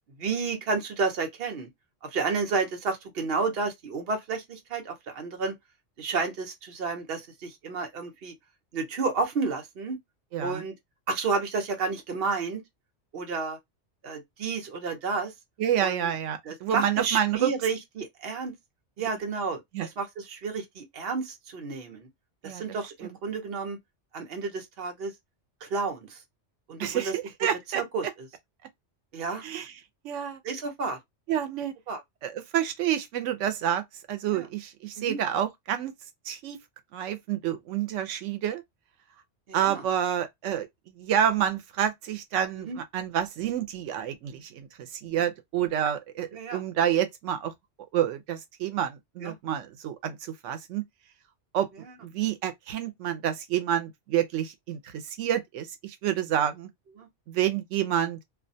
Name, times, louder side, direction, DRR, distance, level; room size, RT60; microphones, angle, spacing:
voice 1, 0.2-1.7 2.1-5.5 6.0-8.3 8.7-10.0 10.4-10.7 11.1-12.6 13.1-13.6 14.0-15.3 15.8-16.1 16.5-18.5 19.0-22.1 22.4-23.8 24.1-25.1 25.6-26.2 26.7-27.1 27.7-28.1 29.1-29.4 30.4-31.0 31.9-32.0 34.3-34.5 35.0-35.2 39.5-39.8 42.6-42.8 46.3-46.6 49.2-49.3 57.0-57.1, right 4 dB, 60° right, 0.9 m, -31 dB
voice 2, 10.3-10.6 15.6-17.5 19.7-19.9 22.4-22.6 23.0-23.2 26.8-27.8 29.4-29.7 30.0-30.4 31.3-31.7 32.2-33.8 34.1-35.9 36.2-36.6 36.9-38.6 39.5-40.7 41.0-47.5 47.9-50.8 51.5-51.7 52.0-56.7 57.3-58.2, right 10 dB, 90° right, 0.9 m, -28 dB
2.5 x 2.2 x 2.6 m
omnidirectional pair, 1.2 m